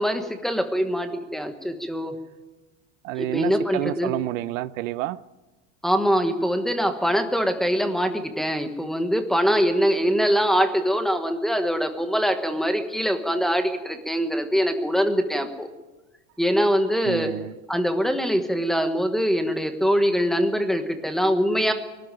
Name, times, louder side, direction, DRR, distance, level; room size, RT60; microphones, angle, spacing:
voice 1, 0.0-2.2 3.2-4.1 5.8-15.7 16.4-17.3 17.7-21.7, equal, ahead, 1.3 m, -23 dB
voice 2, 3.0-5.2 17.0-17.5, right 15 dB, 90° right, 0.9 m, -29 dB
22.5 x 13.0 x 9.1 m
cardioid pair, 170°, 38 cm